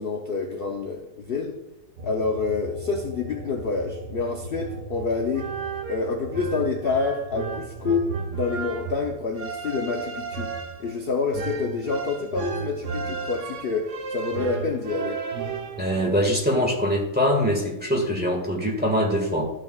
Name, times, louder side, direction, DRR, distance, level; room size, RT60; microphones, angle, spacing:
voice 1, 0.0-1.6 2.0-5.5 5.9-15.2, left 4 dB, 50° left, 1 dB, 0.8 m, -27 dB
sound 1, 2.0-12.9 13.2-14.7, right 2 dB, 85° right, 2.5 m, -42 dB
sound 2, 5.1-16.1, right 5 dB, 55° right, 1.0 m, -33 dB
voice 2, 15.8-19.5, equal, 5° right, -1 dB, 1.5 m, -23 dB
13.0 x 6.2 x 2.4 m, 0.94 s
omnidirectional pair, 1.8 m